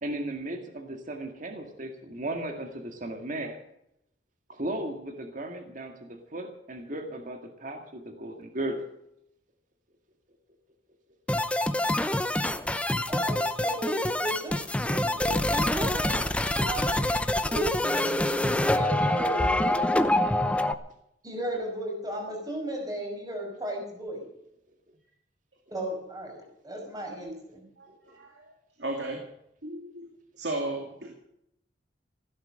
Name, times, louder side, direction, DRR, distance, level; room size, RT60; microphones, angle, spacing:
voice 1, 0.0-3.6 4.5-8.8 27.9-28.2, right 1 dB, 45° right, 5 dB, 2.0 m, -36 dB
sound 1, 11.3-20.7, left 1 dB, 5° left, 0.7 m, -26 dB
voice 2, 13.1-16.2 16.5-17.2 17.5-19.8 21.2-24.3 25.7-27.7, right 1 dB, 20° right, 1 dB, 5.4 m, -35 dB
voice 3, 27.8-28.5 28.8-29.2 29.6-30.1 30.4-31.1, right 2 dB, 70° right, 2 dB, 2.5 m, -35 dB
15.5 x 12.0 x 6.5 m, 0.78 s
head